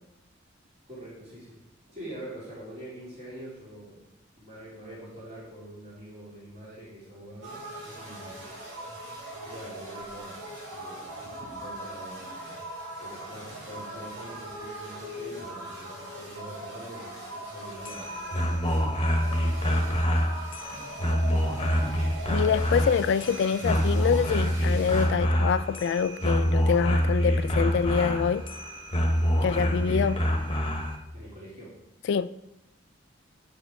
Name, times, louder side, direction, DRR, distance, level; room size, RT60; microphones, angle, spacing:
voice 1, 0.9-4.0 4.3-7.6 7.9-8.4 9.4-10.4 10.7-11.1 11.5-12.3 13.0-18.7 31.1-31.8, right 1 dB, 35° right, 2.7 m, -44 dB
sound 1, 7.4-25.1, right 1 dB, 65° right, 2.9 m, -40 dB
sound 2, 17.7-31.0, equal, 30° left, 1.1 m, -26 dB
voice 2, 22.3-28.5 29.4-30.3 32.1-32.3, left 6 dB, 65° left, 0.3 m, -25 dB
8.8 x 5.1 x 4.7 m
head